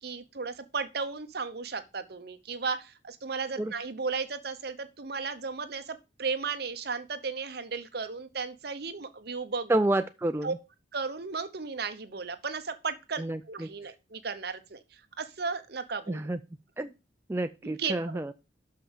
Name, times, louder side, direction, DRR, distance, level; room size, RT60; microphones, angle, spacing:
voice 1, 0.0-9.7 10.4-10.5 10.9-14.8 15.2-16.2 17.6-17.9, right 4 dB, 55° right, 9 dB, 0.9 m, -35 dB
voice 2, 9.7-10.6 13.2-13.7 16.1-16.4 16.8-16.9 17.3-18.3, right 1 dB, 15° right, 8 dB, 0.4 m, -29 dB
6.2 x 5.5 x 7.1 m, 0.28 s
head